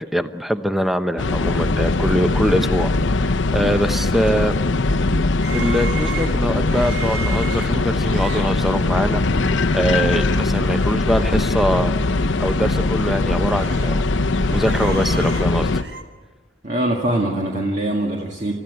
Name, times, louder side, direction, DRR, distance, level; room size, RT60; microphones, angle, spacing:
voice 1, 0.0-2.9 3.5-4.5 5.5-9.2 9.7-11.9 12.4-14.0 14.5-15.7, equal, ahead, 9 dB, 0.8 m, -22 dB
sound 1, 1.2-15.8, left 2 dB, 85° left, 0.8 m, -20 dB
sound 2, 2.6-3.0 3.6-4.0 4.3-4.4 4.9-5.6 6.3-7.0 7.5-8.0, right 4 dB, 85° right, 1.8 m, -39 dB
sound 3, 5.4-9.3 9.7-9.9 10.1-11.6 12.0-12.1 12.6-14.0 14.3-16.0, right 6 dB, 60° right, 1.7 m, -36 dB
voice 2, 16.6-18.5, right 1 dB, 40° right, 0 dB, 2.0 m, -22 dB
30.0 x 14.5 x 9.5 m, 1.5 s
head